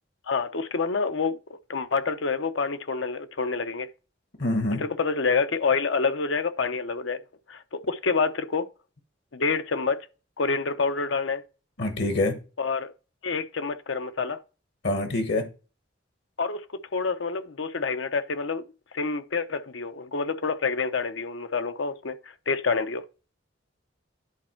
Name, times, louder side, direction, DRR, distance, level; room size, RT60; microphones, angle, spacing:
voice 1, 0.3-1.4 1.7-3.9 4.8-7.2 7.5-8.7 9.3-10.1 10.4-11.4 12.6-12.9 13.2-14.4 16.4-16.6 16.9-18.6 18.9-22.2 22.5-23.0, left 4 dB, 85° left, 0.8 m, -27 dB
voice 2, 4.4-4.8 11.8-12.4 14.8-15.5, left 2 dB, 60° left, 1.1 m, -25 dB
10.0 x 4.3 x 4.5 m
head